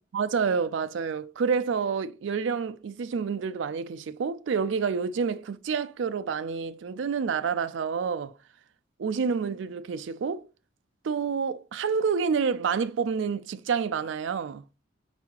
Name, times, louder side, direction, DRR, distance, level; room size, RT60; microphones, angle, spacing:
voice 1, 0.0-8.3 9.0-10.4 11.0-14.6, right 6 dB, 75° right, 0.4 m, -28 dB
4.6 x 4.0 x 2.9 m
head